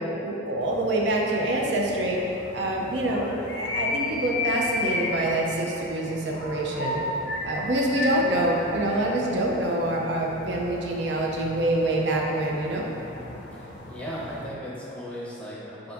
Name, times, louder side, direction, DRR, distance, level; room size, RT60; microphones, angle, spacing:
voice 1, 0.0-2.2 2.5-7.0 7.4-12.8, right 1 dB, 70° right, -2 dB, 0.5 m, -26 dB
sound 1, 0.6-14.6, left 2 dB, 90° left, 0.6 m, -34 dB
voice 2, 13.5-15.9, equal, 5° left, -7 dB, 0.7 m, -37 dB
3.6 x 2.5 x 4.5 m, 2.9 s
head